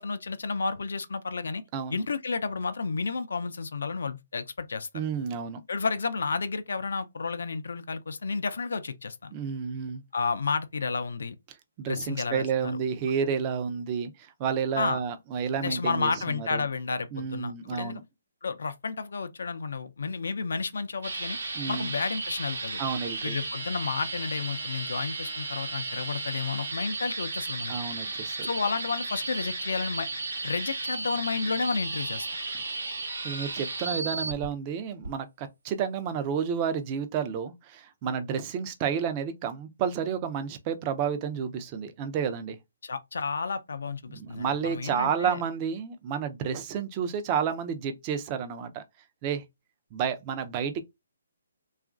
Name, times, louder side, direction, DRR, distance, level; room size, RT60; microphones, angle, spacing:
voice 1, 0.0-1.6 1.9-4.9 5.7-9.3 10.1-11.4 11.9-12.7 14.8-15.0 15.6-18.0 18.4-21.4 21.7-22.8 23.2-27.7 28.4-30.1 30.4-32.3 42.8-45.4, left 4 dB, 75° left, 0.4 m, -31 dB
voice 2, 1.7-2.0 4.9-5.6 9.3-10.0 11.8-16.7 17.1-18.0 21.5-21.9 22.8-23.4 27.7-28.5 33.2-42.6 44.1-48.8 49.2-49.4 49.9-50.8, right 7 dB, 30° right, 0.4 m, -31 dB
sound 1, 21.0-34.5 35.0-35.1, right 3 dB, 85° right, 0.9 m, -34 dB
2.9 x 2.4 x 2.3 m
hypercardioid pair, 150°, 0 cm